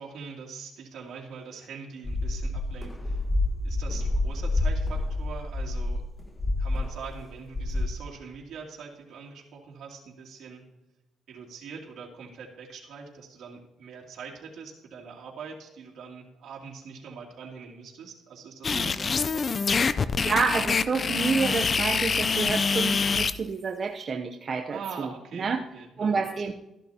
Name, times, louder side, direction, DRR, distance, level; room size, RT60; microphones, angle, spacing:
voice 1, 0.0-3.2 3.6-6.0 6.6-10.6 11.3-19.1 19.3-19.5 24.7-26.2, right 5 dB, 75° right, -2 dB, 2.7 m, -43 dB
sound 1, 2.0-7.2 7.5-7.8, left 2 dB, 15° left, 1.5 m, -28 dB
sound 2, 18.6-23.3, left 5 dB, 40° left, 0.5 m, -25 dB
voice 2, 20.2-25.6 26.0-26.5, right 5 dB, 45° right, 3 dB, 0.8 m, -29 dB
14.0 x 11.5 x 2.9 m, 0.95 s
cardioid pair, 90°, 0 cm